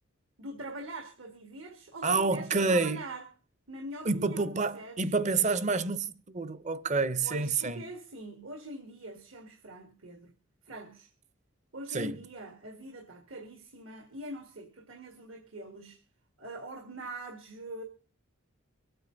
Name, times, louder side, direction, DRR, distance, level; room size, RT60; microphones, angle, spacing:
voice 1, 0.4-3.3 3.7-5.1 7.2-10.3 10.6-11.1 11.7-16.0 16.4-17.8, right 1 dB, 75° right, 2.0 m, -43 dB
voice 2, 2.0-3.0 4.0-7.8 11.9-12.2, right 4 dB, 35° right, 0.7 m, -28 dB
24.5 x 9.2 x 3.9 m
head